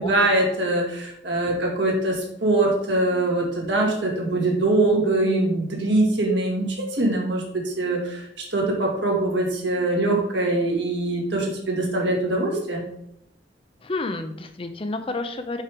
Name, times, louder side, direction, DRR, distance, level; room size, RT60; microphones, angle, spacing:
voice 1, 0.0-12.8, right 2 dB, 75° right, -1 dB, 2.0 m, -23 dB
voice 2, 13.8-15.6, left 2 dB, 30° left, 8 dB, 0.5 m, -30 dB
5.6 x 4.8 x 5.1 m, 0.75 s
head